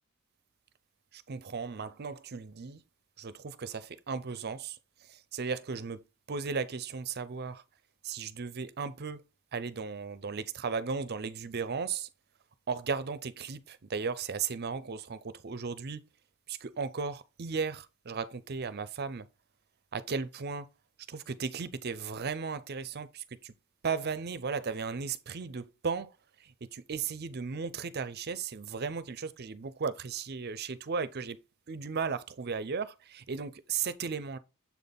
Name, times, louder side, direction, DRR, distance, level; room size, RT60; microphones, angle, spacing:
voice 1, 1.1-2.8 3.2-6.0 6.3-7.6 8.0-9.2 9.5-12.1 12.7-16.0 16.5-19.3 19.9-20.7 21.1-23.5 23.8-31.4 31.7-34.4, right 5 dB, 45° right, 0.5 m, -36 dB
7.2 x 4.1 x 3.5 m
head